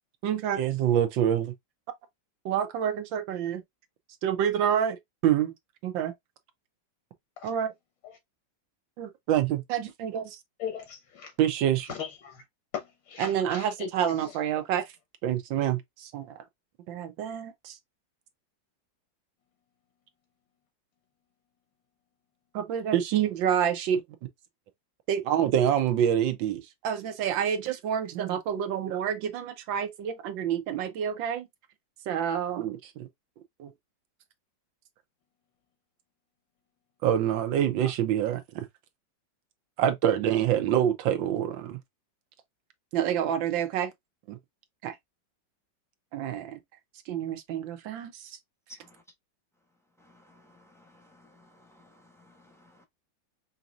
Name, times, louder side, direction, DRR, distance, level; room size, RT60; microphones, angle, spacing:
voice 1, 0.2-1.5 2.4-3.6 4.2-5.5 5.8-6.1 7.4-7.7 9.0-10.4 11.4-11.9 13.2-14.9 15.2-16.4 16.9-17.8 22.5-24.0 25.1-31.5 32.1-33.1 33.6-33.7 37.0-38.7 39.8-41.8 42.9-43.9 44.3-44.4 44.8-45.0 46.1-46.6 47.1-48.3, right 9 dB, 90° right, 1.5 m, -27 dB
voice 2, 10.6-11.3 11.9-12.4 12.7-14.6 37.8-37.9, left 8 dB, 80° left, 1.6 m, -39 dB
voice 3, 50.0-52.8, left 1 dB, ahead, 0.6 m, -59 dB
5.0 x 2.7 x 2.3 m
omnidirectional pair, 2.0 m